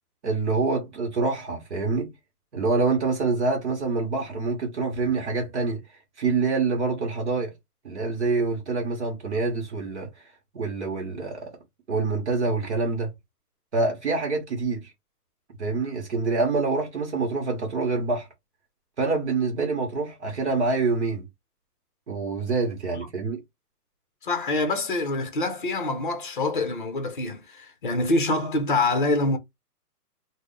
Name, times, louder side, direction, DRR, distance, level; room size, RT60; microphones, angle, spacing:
voice 1, 0.2-2.1 2.5-5.8 6.2-7.5 7.8-10.1 10.5-11.5 11.9-13.1 13.7-14.9 15.6-18.3 19.0-21.3 22.1-23.4, right 4 dB, 45° right, 1.0 m, -26 dB
voice 2, 24.2-29.4, left 2 dB, 35° left, 0.6 m, -25 dB
3.2 x 2.1 x 3.8 m
hypercardioid pair, 175°, 47 cm